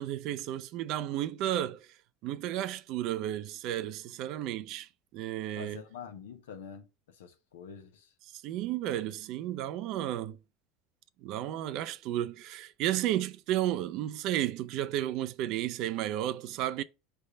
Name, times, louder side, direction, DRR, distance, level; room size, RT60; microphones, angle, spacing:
voice 1, 0.0-1.9 2.2-5.8 8.3-10.4 11.2-16.8, right 12 dB, 60° right, 0.5 m, -33 dB
voice 2, 5.6-8.1, left 7 dB, 80° left, 0.9 m, -46 dB
5.2 x 3.4 x 5.5 m
hypercardioid pair, 75°, 0 cm